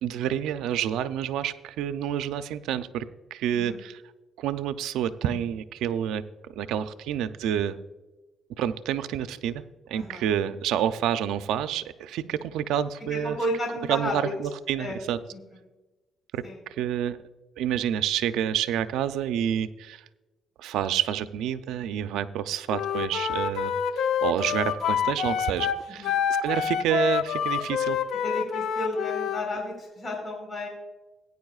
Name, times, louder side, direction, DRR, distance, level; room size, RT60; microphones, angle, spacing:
voice 1, 0.0-3.0 3.3-3.9 4.4-6.2 6.6-7.8 8.6-13.4 13.9-15.2 16.3-16.4 16.8-17.2 17.6-20.0 20.6-26.1 26.4-28.0, right 10 dB, 90° right, 12 dB, 0.5 m, -28 dB
voice 2, 13.1-14.3 14.8-15.0 15.3-15.4 16.4-16.6 26.0-26.1 28.2-30.7, left 1 dB, 30° left, -1 dB, 4.1 m, -32 dB
Wind instrument woodwind instrument, 22.7-29.4, left 8 dB, 75° left, 0.6 m, -27 dB
17.0 x 9.5 x 2.4 m, 1.1 s
cardioid pair, 90°, 0 cm